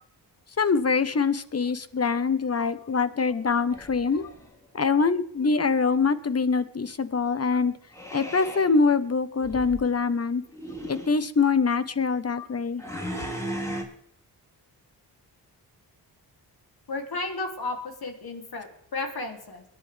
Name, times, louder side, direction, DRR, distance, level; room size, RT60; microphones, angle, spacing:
voice 1, 0.6-4.2 4.7-7.7 8.1-10.4 10.9-12.8, left 4 dB, 35° left, 13 dB, 1.2 m, -24 dB
voice 2, 3.2-3.8 4.2-4.3 12.4-12.5 16.9-19.6, left 3 dB, 60° left, 3 dB, 3.4 m, -35 dB
sound 1, 3.7-4.5 7.9-8.7 9.4-9.8 10.5-11.2 12.8-13.8, equal, 5° left, 5.1 m, -36 dB
22.5 x 11.0 x 3.6 m, 0.68 s
cardioid pair, 60°, 42 cm